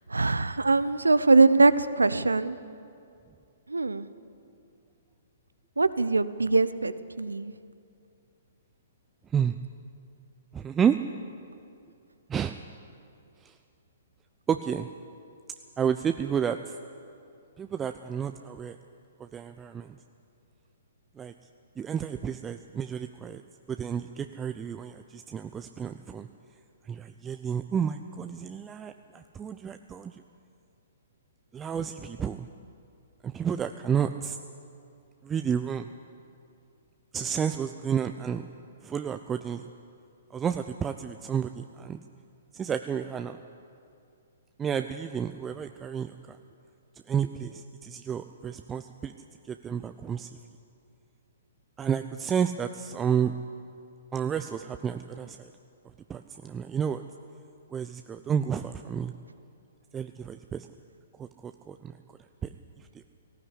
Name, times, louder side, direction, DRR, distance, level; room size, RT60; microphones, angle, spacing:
voice 1, 0.1-2.6 3.7-4.1 5.8-7.5, right 3 dB, 80° right, 15 dB, 0.8 m, -22 dB
voice 2, 10.5-11.0 12.3-12.6 13.4-13.5 14.5-14.9 15.8-16.7 17.6-18.8 19.2-19.9 21.2-21.3 21.8-23.4 23.7-26.3 26.9-30.1 31.5-32.5 33.2-34.4 35.2-35.9 37.1-38.4 38.8-39.6 40.3-42.0 42.5-43.4 44.6-46.4 47.1-49.1 49.5-50.3 51.8-53.4 54.1-55.5 56.1-57.0 57.7-59.1 59.9-60.7 61.2-61.9, right 7 dB, 15° right, 8 dB, 0.6 m, -31 dB
18.0 x 15.0 x 9.9 m, 2.5 s
figure-of-eight pair, 120°, 0 cm